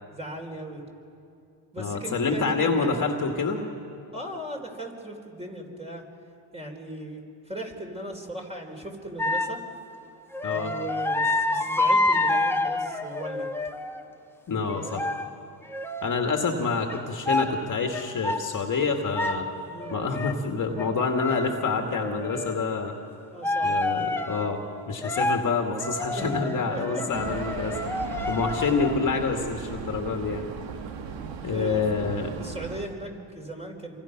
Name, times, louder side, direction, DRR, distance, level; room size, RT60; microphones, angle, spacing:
voice 1, 0.1-0.8 1.7-3.1 4.1-6.0 6.5-7.2 7.5-9.6 10.5-13.4 14.5-15.2 19.7-20.0 23.3-23.7 26.1-27.1 31.1-31.8 32.1-34.0, right 1 dB, 15° right, 1 dB, 4.5 m, -38 dB
voice 2, 1.8-3.6 10.4-10.8 14.5-15.0 16.0-19.5 19.9-22.9 23.6-24.6 24.9-27.8 28.3-30.5 31.4-32.4, left 4 dB, 40° left, 3 dB, 2.2 m, -27 dB
sound 1, 9.2-9.6 10.3-14.0 14.7-15.3 15.7-16.1 16.9-17.0 17.3-17.5 17.9-18.5 18.9-19.4 19.8-20.4 20.8-22.6 23.4-24.5 25.0-25.4 25.7-28.9, left 2 dB, 5° left, 1.4 m, -28 dB
sound 2, 27.1-32.9, right 7 dB, 70° right, 1.8 m, -37 dB
27.5 x 24.5 x 6.1 m, 2.6 s
supercardioid pair, 90°, 47 cm